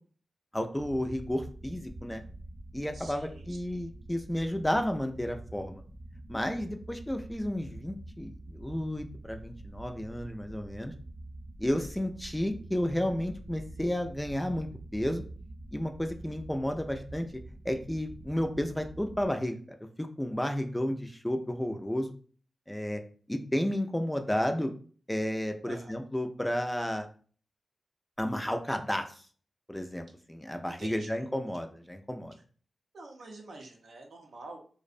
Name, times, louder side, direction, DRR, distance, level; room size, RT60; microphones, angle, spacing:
voice 1, 0.5-2.2 2.7-5.8 6.3-10.9 11.6-15.2 15.7-17.3 17.6-19.6 20.0-22.1 22.7-23.0 23.3-24.7 25.1-27.1 28.2-29.1 29.7-32.3, left 1 dB, 10° left, 5 dB, 0.3 m, -32 dB
sound 1, 0.8-19.3, right 1 dB, 20° right, 0.7 m, -46 dB
voice 2, 2.9-3.8 25.6-26.0 30.8-31.2 32.9-34.6, right 2 dB, 80° right, 1 dB, 0.5 m, -47 dB
2.5 x 2.0 x 2.5 m, 0.43 s
cardioid pair, 55°, 0 cm